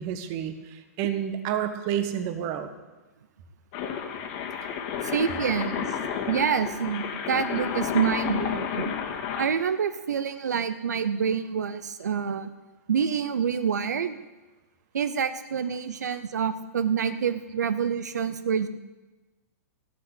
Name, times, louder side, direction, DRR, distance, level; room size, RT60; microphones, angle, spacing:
voice 1, 0.0-2.7, right 9 dB, 35° right, 9 dB, 1.3 m, -30 dB
sound 1, 3.7-9.5, left 8 dB, 40° left, 1.9 m, -31 dB
voice 2, 5.0-8.9 9.4-12.5 12.9-14.2 14.9-18.7, right 7 dB, 85° right, 11 dB, 0.7 m, -27 dB
15.0 x 5.9 x 8.4 m, 1.2 s
hypercardioid pair, 140°, 9 cm